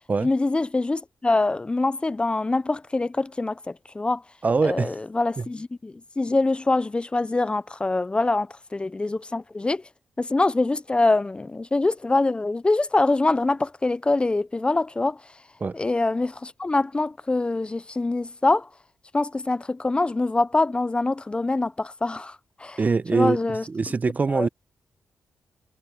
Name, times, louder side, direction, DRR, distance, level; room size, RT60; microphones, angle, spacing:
voice 1, 0.2-4.2 4.6-9.8 10.2-15.2 15.7-18.7 19.1-22.8 23.1-23.6 24.3-24.5, left 2 dB, 25° left, 0.6 m, -24 dB
voice 2, 4.4-4.9 15.6-15.7 22.8-23.4 23.7-24.5, right 4 dB, 40° right, 0.9 m, -22 dB
cardioid pair, 60°, 4 cm